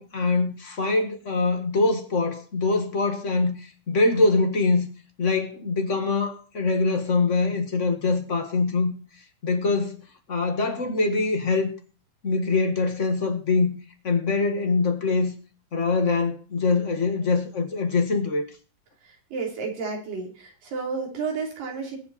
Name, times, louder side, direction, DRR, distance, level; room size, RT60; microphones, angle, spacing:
voice 1, 0.0-4.9 5.2-8.9 9.4-10.0 10.3-11.7 12.2-13.7 14.0-15.3 15.7-18.5, left 3 dB, 40° left, 1.0 m, -23 dB
voice 2, 19.0-22.0, right 4 dB, 80° right, 5.1 m, -31 dB
22.0 x 7.9 x 4.2 m
omnidirectional pair, 3.9 m